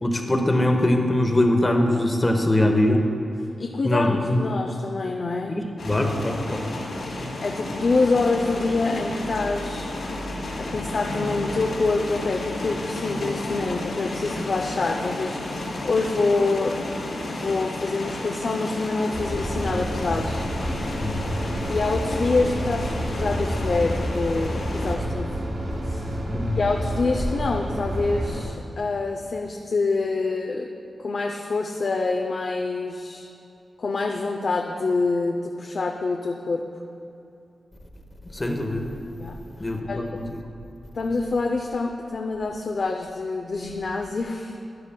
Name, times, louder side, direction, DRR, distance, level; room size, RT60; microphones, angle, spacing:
voice 1, 0.0-3.0 3.8-4.4 5.5-6.7 7.0-7.3 21.0-21.3 26.3-26.6 38.3-38.9 39.6-40.2, left 1 dB, 20° left, 3 dB, 0.9 m, -22 dB
voice 2, 3.6-5.6 7.4-9.9 10.6-16.8 17.4-20.4 21.7-25.3 25.8-26.1 26.6-30.7 31.0-33.3 33.8-36.6 39.2-39.4 39.9-40.1 40.9-44.6, left 3 dB, 55° left, 2 dB, 0.5 m, -26 dB
sound 1, 5.8-25.0, left 1 dB, 85° left, 2.3 m, -32 dB
sound 2, 19.1-28.4, equal, 60° right, 2.2 m, -29 dB
12.5 x 10.5 x 2.2 m, 2.7 s
wide cardioid pair, 100°, 0 cm